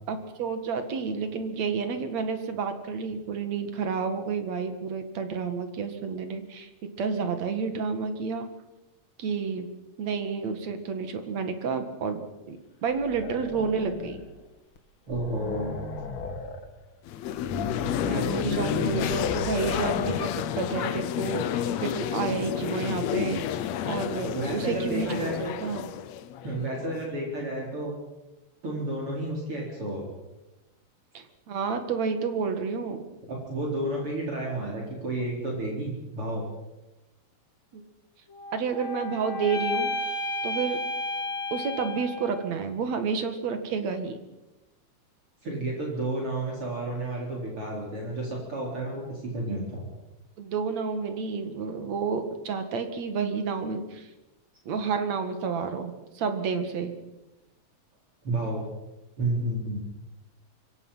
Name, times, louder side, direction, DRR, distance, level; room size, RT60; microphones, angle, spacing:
voice 1, 0.1-6.7 7.0-8.5 9.2-9.7 10.0-14.2 18.0-23.4 23.8-25.3 25.6-25.9 31.1-33.1 37.7-37.8 38.5-39.9 40.4-40.8 41.5-44.2 50.4-54.1 54.7-56.9, right 5 dB, 70° right, 8 dB, 3.2 m, -30 dB
sound 1, 12.9-14.4 14.8-14.9 15.1-16.7 17.3-20.4, left 3 dB, 50° left, 2.4 m, -35 dB
voice 2, 15.1-15.7 24.3-25.5 26.4-27.9 28.6-30.1 33.3-36.4 45.4-49.8 58.2-58.7 59.2-59.8, right 1 dB, 45° right, -2 dB, 4.9 m, -31 dB
sound 2, 17.1-27.1, left 10 dB, 70° left, 2.0 m, -30 dB
sound 3, 38.3-42.6, left 2 dB, 30° left, 2.6 m, -32 dB
26.0 x 23.0 x 5.7 m, 1.0 s
omnidirectional pair, 3.3 m